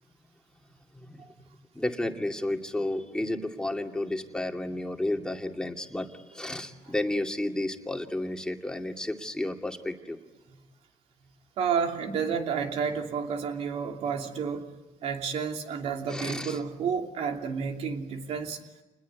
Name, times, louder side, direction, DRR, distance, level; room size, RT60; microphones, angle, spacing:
voice 1, 1.7-10.2 16.1-16.6, left 1 dB, 5° left, 3 dB, 2.5 m, -32 dB
voice 2, 11.6-14.7 15.0-18.6, right 6 dB, 70° right, 4 dB, 2.9 m, -30 dB
28.5 x 20.5 x 9.6 m, 1.1 s
cardioid pair, 100°, 11 cm